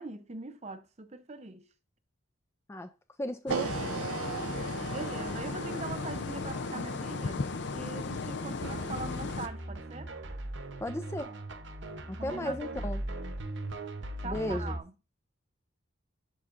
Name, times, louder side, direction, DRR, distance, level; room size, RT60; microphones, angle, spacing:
voice 1, 0.0-1.7 4.3-10.1 12.2-13.0 14.2-14.9, right 3 dB, 30° right, 0.6 m, -42 dB
voice 2, 3.2-3.9 10.8-11.3 12.1-13.0 14.2-14.7, left 1 dB, 10° left, 0.3 m, -35 dB
sound 1, 3.5-9.5, left 4 dB, 55° left, 0.6 m, -35 dB
sound 2, 3.5-9.7, right 6 dB, 90° right, 0.5 m, -40 dB
sound 3, 8.6-14.8, right 1 dB, 55° right, 0.8 m, -39 dB
11.0 x 5.5 x 2.5 m
head